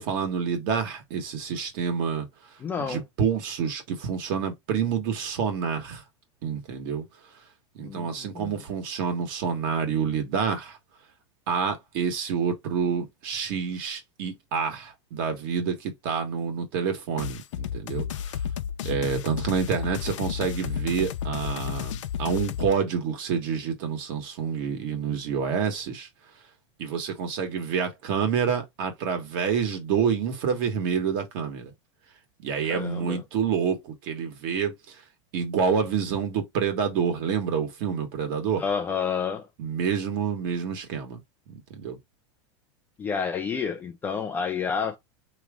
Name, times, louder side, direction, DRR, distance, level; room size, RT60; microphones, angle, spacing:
voice 1, 0.0-2.3 2.8-6.0 6.4-7.0 7.7-10.8 11.5-18.0 18.8-26.1 26.8-31.7 32.4-34.9 35.3-38.6 39.6-41.2 41.8-42.0, right 6 dB, 45° right, 1.6 m, -28 dB
voice 2, 2.6-3.0 7.8-8.6 32.7-33.2 38.5-39.5 43.0-45.0, left 6 dB, 10° left, 0.3 m, -30 dB
sound 1, 17.2-22.7, left 8 dB, 90° left, 0.7 m, -32 dB
4.8 x 3.1 x 3.5 m
supercardioid pair, 165°, 15 cm